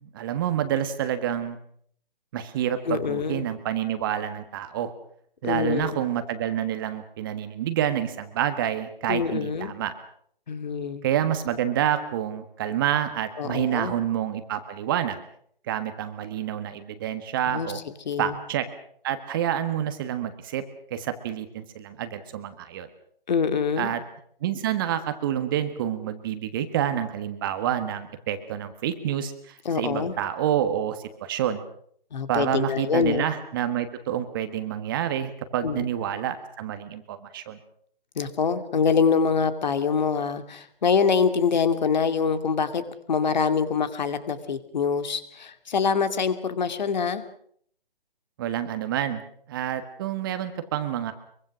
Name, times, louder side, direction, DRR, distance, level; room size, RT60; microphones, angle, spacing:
voice 1, 0.0-1.6 2.3-4.9 5.4-9.9 11.0-15.2 15.6-17.8 18.2-18.7 19.0-20.6 20.9-22.9 23.8-24.0 24.4-31.6 32.3-37.6 48.4-51.1, right 10 dB, 25° right, 10 dB, 1.5 m, -28 dB
voice 2, 2.9-3.4 5.4-6.0 9.1-9.7 10.5-11.0 13.4-13.9 17.5-17.7 18.1-18.4 23.3-23.9 29.6-30.1 32.1-33.2 35.6-35.8 38.2-47.2, left 6 dB, 50° left, 10 dB, 2.5 m, -25 dB
24.5 x 23.5 x 6.2 m, 0.63 s
hypercardioid pair, 155°, 29 cm